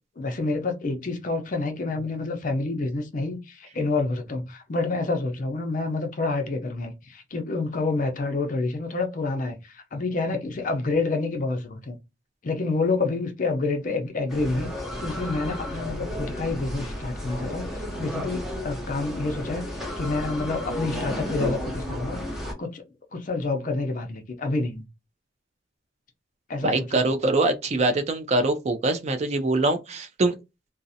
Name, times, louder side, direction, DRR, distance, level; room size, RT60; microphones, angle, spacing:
voice 1, 0.2-12.0 12.4-19.7 20.0-22.2 22.6-22.8 23.1-24.9 26.5-27.1, left 3 dB, 45° left, 0.5 m, -28 dB
sound 1, 14.3-22.5, left 1 dB, ahead, 0.7 m, -33 dB
voice 2, 26.6-30.3, right 2 dB, 35° right, 0.4 m, -23 dB
2.5 x 2.0 x 2.6 m
head